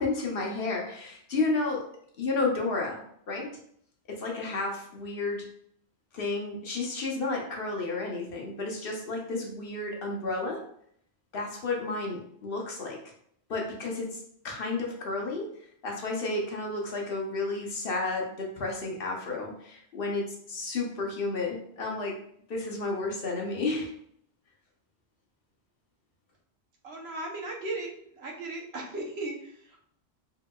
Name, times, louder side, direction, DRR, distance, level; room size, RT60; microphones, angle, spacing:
voice 1, 0.0-1.8 2.2-3.0 3.3-3.6 4.1-5.4 6.1-10.6 11.3-13.0 13.5-15.5 15.8-22.2 22.5-23.9, left 3 dB, 60° left, 0 dB, 0.8 m, -32 dB
voice 2, 26.8-29.9, right 2 dB, 70° right, 0 dB, 0.9 m, -37 dB
3.7 x 2.8 x 2.2 m, 0.67 s
omnidirectional pair, 1.2 m